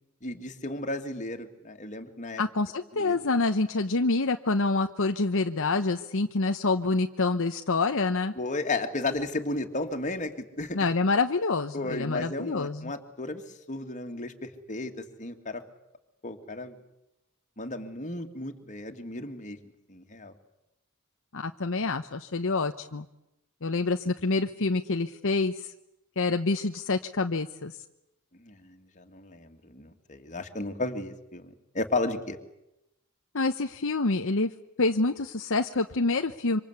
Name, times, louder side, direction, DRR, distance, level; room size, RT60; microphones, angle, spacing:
voice 1, 0.2-2.4 3.0-3.2 8.4-10.9 11.7-13.4 13.7-14.9 15.2-15.6 16.2-16.8 17.6-19.6 19.9-20.3 28.4-32.4, left 2 dB, 35° left, 5 dB, 2.5 m, -34 dB
voice 2, 2.4-8.3 10.7-12.9 21.3-23.1 23.6-25.7 26.2-27.7 33.3-34.5 34.8-36.6, left 3 dB, 60° left, 6 dB, 1.0 m, -27 dB
26.5 x 25.5 x 8.3 m, 0.88 s
head